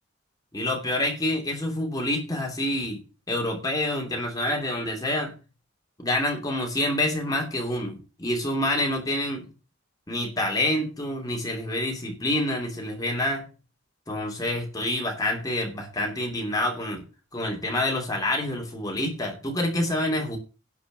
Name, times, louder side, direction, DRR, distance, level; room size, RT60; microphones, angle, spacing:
voice 1, 0.5-3.0 3.3-5.4 6.0-9.5 10.1-13.5 14.1-17.0 17.3-20.4, left 1 dB, 20° left, 1 dB, 2.8 m, -27 dB
11.5 x 5.2 x 7.7 m, 0.33 s
head